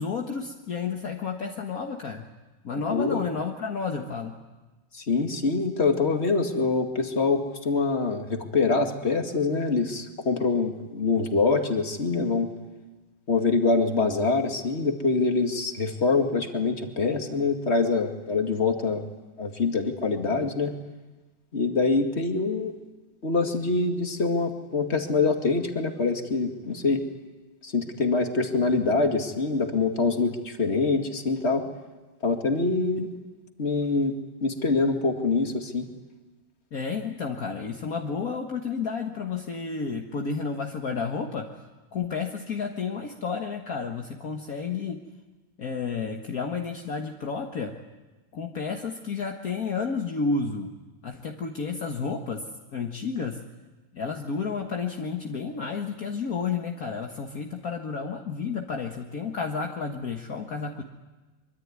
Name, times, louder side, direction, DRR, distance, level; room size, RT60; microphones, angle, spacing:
voice 1, 0.0-2.2 2.6-4.4 36.7-41.7 41.9-45.0 45.6-47.7 48.3-50.7 51.0-52.5 52.7-53.4 53.9-60.8, left 5 dB, 55° left, 2 dB, 1.9 m, -31 dB
voice 2, 2.9-3.2 4.9-12.5 13.3-19.0 19.4-20.7 21.5-22.7 23.2-27.0 27.6-31.7 32.2-33.1 33.6-34.1 34.4-35.9, left 3 dB, 40° left, 4 dB, 2.5 m, -25 dB
24.5 x 24.5 x 9.7 m, 1.2 s
omnidirectional pair, 1.9 m